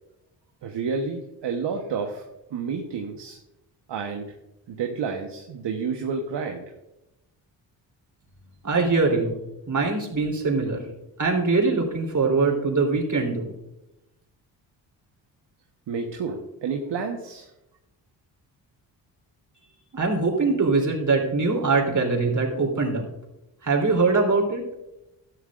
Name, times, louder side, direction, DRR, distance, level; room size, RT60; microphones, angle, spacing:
voice 1, 0.6-2.2 2.5-3.4 3.9-4.3 4.7-6.6 15.9-17.5, right 5 dB, 60° right, 3 dB, 1.2 m, -30 dB
voice 2, 8.6-9.4 9.7-10.8 11.2-13.5 19.9-23.0 23.6-24.6, right 3 dB, 35° right, 1 dB, 3.5 m, -22 dB
12.5 x 11.0 x 2.5 m, 0.91 s
supercardioid pair, 50°, 49 cm